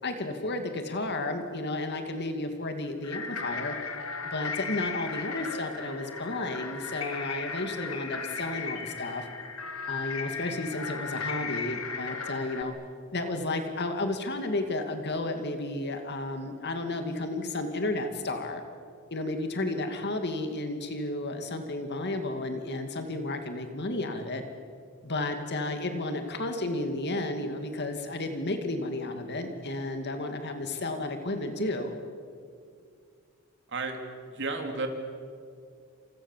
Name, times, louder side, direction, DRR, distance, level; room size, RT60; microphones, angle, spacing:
voice 1, 0.0-3.7 4.2-9.3 9.9-12.7 13.1-18.6 19.1-24.4 25.0-32.0, left 2 dB, 55° left, 6 dB, 2.4 m, -32 dB
sound 1, 3.0-12.6, left 5 dB, 75° left, 2.6 m, -36 dB
voice 2, 34.3-34.9, right 3 dB, 60° right, 4 dB, 3.7 m, -32 dB
29.0 x 27.5 x 7.5 m, 2.3 s
head